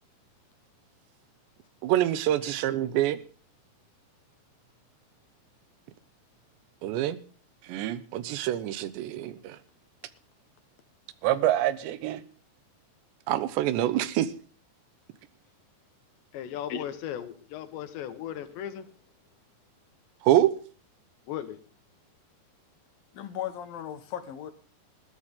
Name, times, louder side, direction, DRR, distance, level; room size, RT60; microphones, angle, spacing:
voice 1, 1.8-3.2 6.8-7.2 7.7-9.3 11.2-12.2 13.3-14.3 20.3-20.5, right 13 dB, 90° right, 3.3 m, -25 dB
voice 2, 16.3-18.9 21.3-21.6, left 10 dB, 90° left, 3.7 m, -37 dB
voice 3, 23.1-24.5, left 9 dB, 65° left, 3.0 m, -36 dB
20.5 x 14.0 x 3.7 m
omnidirectional pair, 4.9 m